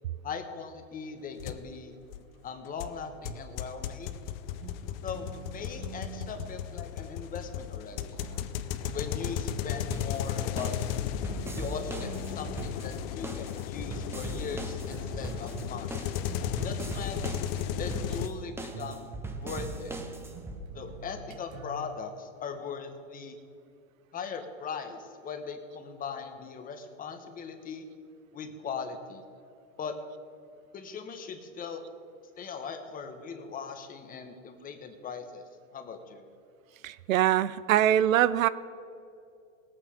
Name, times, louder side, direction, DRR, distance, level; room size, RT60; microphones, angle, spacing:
voice 1, 0.2-1.9 2.4-4.2 5.0-8.2 8.9-10.7 11.6-16.0 16.6-17.2 17.8-19.1 19.4-20.0 20.7-23.4 24.1-27.9 28.3-29.2 29.8-30.0 30.7-31.8 32.3-35.4 35.7-36.2, left 5 dB, 20° left, 7 dB, 1.1 m, -39 dB
sound 1, 1.4-1.6 2.1-2.2 2.8-18.3, left 11 dB, 45° left, 0.7 m, -35 dB
sound 2, 3.2-3.7 4.6-6.7 8.2-10.0 11.3-13.0 14.2-22.1, right 6 dB, 55° right, 1.5 m, -46 dB
sound 3, 9.9-20.6, right 2 dB, 5° right, 0.7 m, -40 dB
voice 2, 36.8-38.5, right 11 dB, 85° right, 17 dB, 0.6 m, -23 dB
18.0 x 8.7 x 5.0 m, 2.5 s
hypercardioid pair, 130°, 39 cm